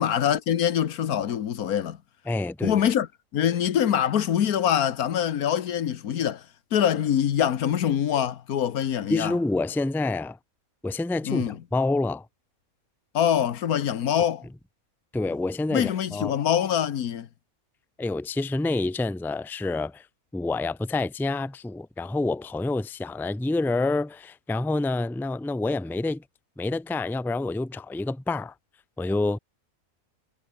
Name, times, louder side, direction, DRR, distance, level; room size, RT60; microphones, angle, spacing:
voice 1, 0.0-2.0 2.6-3.1 3.3-6.4 6.7-9.3 11.2-11.6 13.1-14.4 15.7-17.3, left 9 dB, 85° left, 1.5 m, -24 dB
voice 2, 2.3-2.8 9.1-10.4 10.8-12.3 15.1-16.4 18.0-20.1 20.3-26.2 26.6-28.5 29.0-29.4, left 2 dB, ahead, 0.6 m, -27 dB
omnidirectional pair, 1.5 m